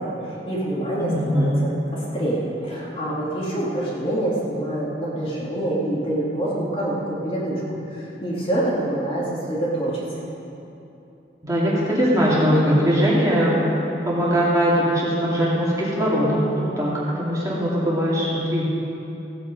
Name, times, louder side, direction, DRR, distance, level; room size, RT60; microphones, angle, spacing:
voice 1, 0.0-7.6 7.9-10.0, right 1 dB, 30° left, -6 dB, 2.2 m, -26 dB
voice 2, 1.0-1.6 11.4-13.6 14.1-18.6, equal, 20° right, -7 dB, 2.2 m, -21 dB
16.0 x 8.8 x 5.2 m, 2.9 s
head